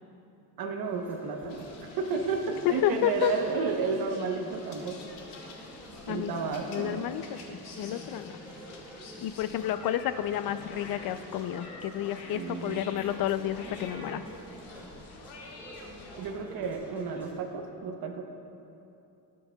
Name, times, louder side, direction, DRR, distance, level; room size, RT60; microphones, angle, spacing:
voice 1, 0.6-5.0 6.1-7.1 12.3-12.9 16.2-18.2, right 4 dB, 65° right, 3 dB, 1.0 m, -32 dB
sound 1, 0.8-17.3, equal, 5° right, 1.8 m, -48 dB
sound 2, 1.4-16.3, left 3 dB, 85° left, 1.5 m, -49 dB
voice 2, 2.6-3.3 6.1-8.3 9.2-14.2, left 12 dB, 60° left, 12 dB, 0.5 m, -30 dB
18.0 x 8.5 x 2.3 m, 2.7 s
cardioid pair, 145°, 39 cm